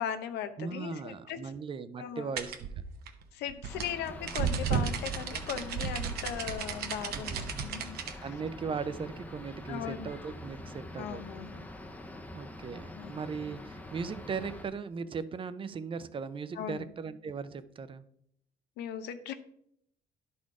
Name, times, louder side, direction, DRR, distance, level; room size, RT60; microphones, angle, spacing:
voice 1, 0.0-1.4 2.0-2.3 3.3-8.2 9.7-10.1 11.0-11.6 13.0-13.1 16.6-16.8 18.8-19.3, left 9 dB, 85° left, 9 dB, 0.8 m, -38 dB
voice 2, 0.6-2.7 7.1-7.4 7.9-11.2 12.3-18.1, right 5 dB, 30° right, 14 dB, 0.5 m, -38 dB
sound 1, 2.4-8.1, right 7 dB, 70° right, 1.0 m, -33 dB
sound 2, 3.7-14.6, left 1 dB, 10° left, 0.7 m, -45 dB
11.0 x 4.3 x 4.8 m, 0.73 s
cardioid pair, 110°, 17 cm